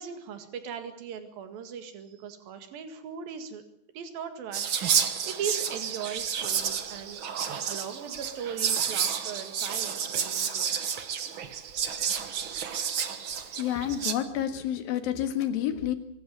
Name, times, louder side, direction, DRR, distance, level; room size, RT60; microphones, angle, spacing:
voice 1, 0.0-3.6 3.9-7.2 7.7-10.7, right 7 dB, 75° right, 8 dB, 3.8 m, -39 dB
Whispering, 4.5-14.1, right 7 dB, 50° right, 1.6 m, -30 dB
voice 2, 13.5-15.9, left 10 dB, 80° left, 9 dB, 3.6 m, -29 dB
25.0 x 13.0 x 9.5 m, 0.76 s
omnidirectional pair, 4.1 m